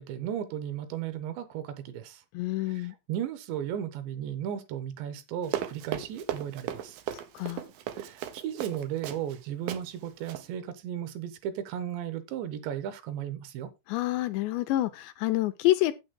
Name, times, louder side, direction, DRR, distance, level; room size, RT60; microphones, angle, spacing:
voice 1, 0.0-2.2 2.6-7.0 8.0-13.7, right 10 dB, 75° right, 3.0 m, -35 dB
voice 2, 2.3-2.9 7.3-7.6 13.9-15.9, left 16 dB, 85° left, 2.5 m, -27 dB
Run, 5.4-9.4 9.7-9.8 10.2-10.4, right 11 dB, 90° right, 2.0 m, -35 dB
9.0 x 8.4 x 3.7 m
omnidirectional pair, 5.6 m